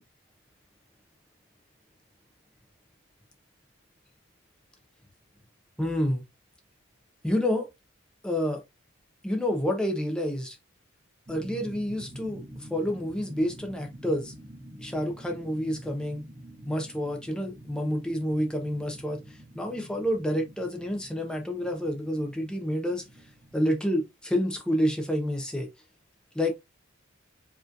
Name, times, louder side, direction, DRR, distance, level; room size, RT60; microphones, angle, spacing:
voice 1, 5.8-6.2 7.2-7.7 8.2-8.6 9.2-10.6 11.3-14.3 14.8-16.2 16.6-23.0 23.5-25.7 26.3-26.5, equal, 5° left, 0.9 m, -29 dB
sound 1, 11.3-23.8, equal, 35° right, 1.1 m, -47 dB
4.9 x 3.1 x 2.5 m
head